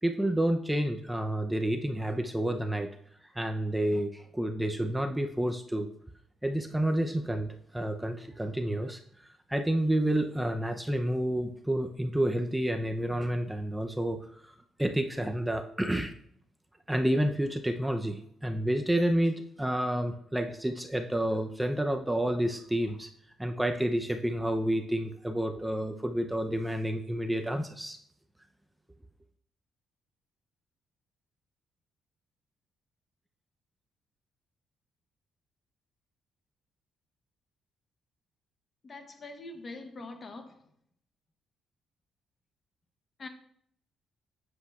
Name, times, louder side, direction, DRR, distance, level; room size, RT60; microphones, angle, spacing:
voice 1, 0.0-2.9 3.4-5.9 6.4-9.0 9.5-14.2 14.4-14.5 14.8-16.1 16.9-23.1 23.4-28.0, right 1 dB, 5° right, 0.6 m, -29 dB
voice 2, 38.8-40.7 43.2-43.3, left 2 dB, 40° left, 1.1 m, -43 dB
9.8 x 8.2 x 2.4 m
cardioid pair, 90°, 0 cm